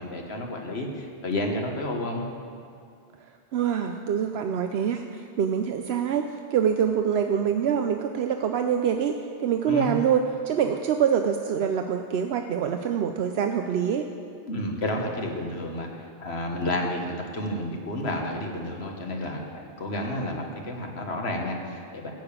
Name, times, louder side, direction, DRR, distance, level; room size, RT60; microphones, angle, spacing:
voice 1, 0.0-2.3 9.7-9.9 14.5-22.1, left 1 dB, 80° left, 2 dB, 1.7 m, -31 dB
voice 2, 3.5-14.1, right 8 dB, 80° right, 6 dB, 0.9 m, -25 dB
14.0 x 6.9 x 8.6 m, 2.4 s
omnidirectional pair, 1.1 m